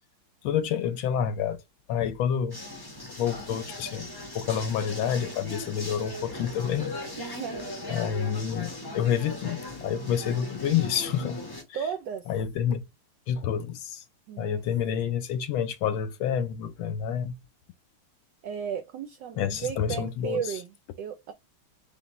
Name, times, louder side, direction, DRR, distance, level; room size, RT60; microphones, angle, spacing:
voice 1, 0.4-1.6 1.9-2.6 3.2-4.1 4.3-7.4 7.9-11.4 11.7-11.8 12.3-12.8 13.3-14.0 14.4-17.4 19.4-20.6, left 8 dB, 75° left, 1.3 m, -28 dB
sound 1, 2.5-11.6, left 1 dB, 30° left, 0.4 m, -38 dB
voice 2, 7.2-7.7 11.7-12.3 14.3-14.6 18.4-21.3, right 8 dB, 75° right, 1.0 m, -34 dB
4.3 x 3.4 x 2.9 m
omnidirectional pair, 2.4 m